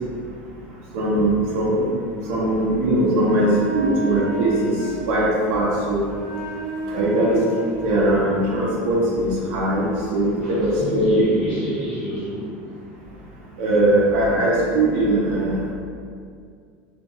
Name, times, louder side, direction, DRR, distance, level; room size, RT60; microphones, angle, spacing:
voice 1, 0.9-1.9 2.2-6.0 6.9-7.4 7.8-11.2 13.6-15.7, right 1 dB, 65° right, -5 dB, 0.6 m, -20 dB
Wind instrument woodwind instrument, 3.2-8.7, right 1 dB, 90° left, 0.6 m, -32 dB
voice 2, 10.4-12.5, equal, 20° left, -12 dB, 1.0 m, -29 dB
2.2 x 2.1 x 2.7 m, 2.2 s
cardioid pair, 160°, 6 cm